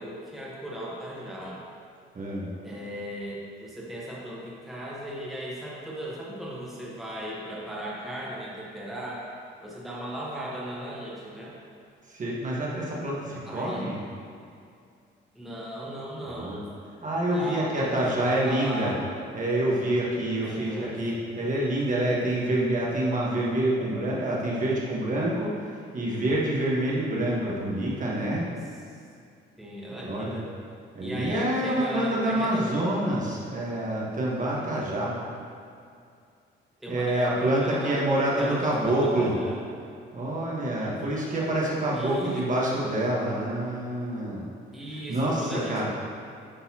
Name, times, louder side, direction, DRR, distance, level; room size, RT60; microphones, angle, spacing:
voice 1, 0.0-1.6 2.6-9.3 9.6-11.6 13.4-13.8 15.3-16.6 17.3-19.0 20.4-21.0 28.9-29.0 29.6-30.5 31.0-32.7 36.8-39.6 40.8-41.5 41.9-42.5 44.7-45.9, right 1 dB, ahead, -6 dB, 1.1 m, -37 dB
voice 2, 2.1-2.5 12.1-14.0 16.3-16.6 17.0-18.9 19.3-28.4 30.0-30.4 30.9-35.1 36.9-39.3 40.1-44.4 44.9-45.9, right 1 dB, 40° right, -5 dB, 1.3 m, -27 dB
10.0 x 4.0 x 2.9 m, 2.4 s
cardioid pair, 90°, 20 cm